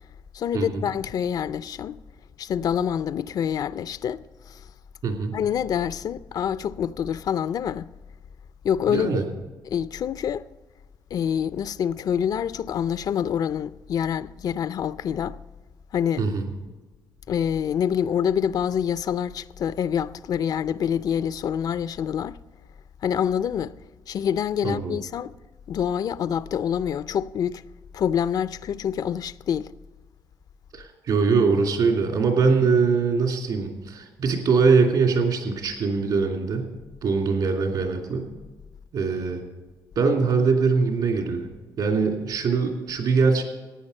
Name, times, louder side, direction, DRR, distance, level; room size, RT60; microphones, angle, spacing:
voice 1, 0.3-2.0 2.4-4.6 5.3-7.9 8.6-9.2 9.7-10.5 11.1-15.4 15.9-16.2 17.3-22.4 23.0-23.7 24.1-25.4 25.7-27.6 27.9-29.7, left 8 dB, 60° left, 0.4 m, -26 dB
voice 2, 5.0-5.3 8.9-9.2 16.2-16.5 24.6-25.0 30.7-36.7 37.0-38.3 38.9-39.4 40.0-41.5 41.8-43.4, right 4 dB, 70° right, 2.8 m, -22 dB
15.0 x 9.6 x 5.4 m
cardioid pair, 110°, 7 cm